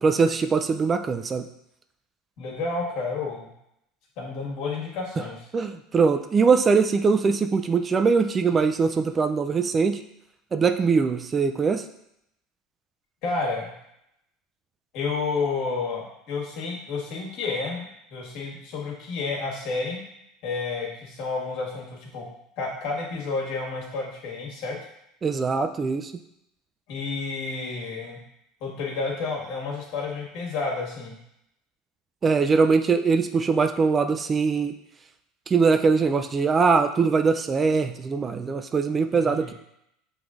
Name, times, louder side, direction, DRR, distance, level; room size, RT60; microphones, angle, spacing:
voice 1, 0.0-1.4 5.5-10.0 10.5-11.8 25.2-26.1 32.2-34.7 35.5-39.5, right 5 dB, 30° right, 8 dB, 0.3 m, -22 dB
voice 2, 2.4-3.5 4.2-5.4 13.2-13.7 14.9-20.0 20.4-22.3 22.6-24.8 26.9-28.2 28.6-31.2 39.2-39.5, left 4 dB, 65° left, -2 dB, 1.5 m, -30 dB
6.0 x 3.3 x 2.5 m, 0.79 s
supercardioid pair, 100°, 0 cm